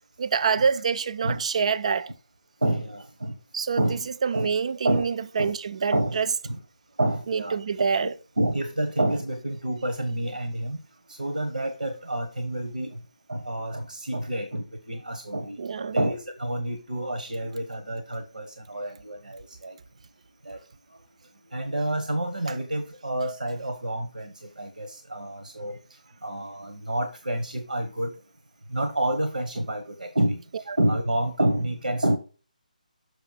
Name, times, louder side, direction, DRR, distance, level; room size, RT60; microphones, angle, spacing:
voice 1, 0.2-2.1 3.5-3.8 4.2-6.3 7.3-8.1 15.6-15.9, right 6 dB, 50° right, 0.4 m, -26 dB
voice 2, 2.6-3.4 3.8-4.0 4.3-4.5 4.8-5.1 5.4-5.5 5.9-6.6 7.0-8.1 8.4-10.8 11.1-13.0 13.3-15.6 15.9-19.8 20.4-20.6 21.5-25.8 26.2-28.1 28.7-32.2, right 1 dB, 85° right, 1.2 m, -28 dB
6.7 x 5.6 x 4.0 m
figure-of-eight pair, 155°, 5 cm